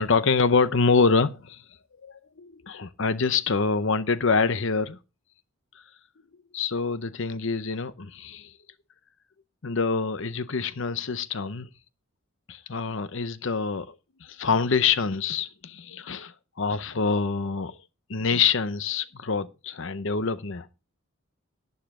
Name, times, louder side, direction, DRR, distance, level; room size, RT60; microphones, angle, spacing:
voice 1, 0.0-1.6 2.0-5.0 6.5-8.5 9.6-11.7 12.5-14.0 14.2-17.8 18.1-20.7, left 5 dB, 60° left, 0.7 m, -26 dB
11.5 x 9.6 x 3.7 m
head